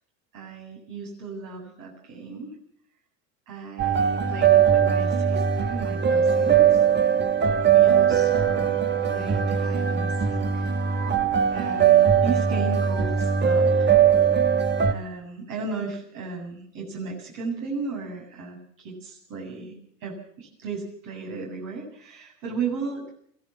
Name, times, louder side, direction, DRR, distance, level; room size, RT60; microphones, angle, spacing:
voice 1, 0.3-2.6 3.5-6.8 7.7-10.7 11.5-14.0 14.4-14.5 14.9-19.8 20.0-23.1, right 4 dB, 60° right, 0 dB, 8.0 m, -35 dB
sound 1, 3.8-14.9, right 8 dB, 30° right, 1.3 m, -20 dB
22.5 x 16.5 x 7.3 m, 0.63 s
supercardioid pair, 105°, 38 cm